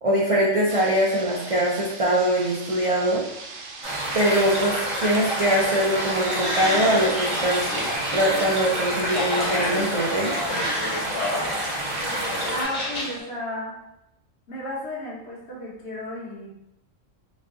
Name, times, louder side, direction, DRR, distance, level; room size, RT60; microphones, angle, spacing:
voice 1, 0.0-3.2 4.1-7.7 8.1-10.3, right 1 dB, 65° right, -5 dB, 0.3 m, -22 dB
sound 1, 0.7-8.0, right 3 dB, 85° right, 1.0 m, -40 dB
sound 2, 3.8-12.6, right 1 dB, 30° right, 0.6 m, -28 dB
sound 3, 6.0-13.2, left 1 dB, 35° left, 0.8 m, -32 dB
voice 2, 12.5-13.7 14.5-16.5, left 1 dB, 60° left, -5 dB, 1.2 m, -33 dB
3.0 x 2.3 x 3.6 m, 0.83 s
omnidirectional pair, 1.3 m